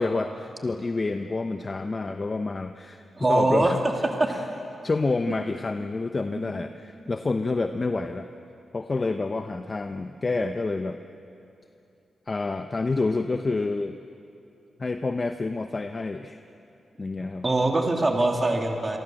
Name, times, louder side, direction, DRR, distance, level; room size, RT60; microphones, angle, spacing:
voice 1, 0.0-3.8 4.3-4.4 4.8-8.3 8.7-11.0 12.3-14.0 14.8-16.4 17.0-17.4, left 3 dB, 30° left, 7 dB, 0.9 m, -28 dB
voice 2, 3.2-3.7 4.2-4.3 6.3-6.4 17.4-19.0, right 2 dB, 25° right, 2 dB, 2.8 m, -22 dB
27.0 x 23.5 x 7.7 m, 2.8 s
cardioid pair, 105°, 0 cm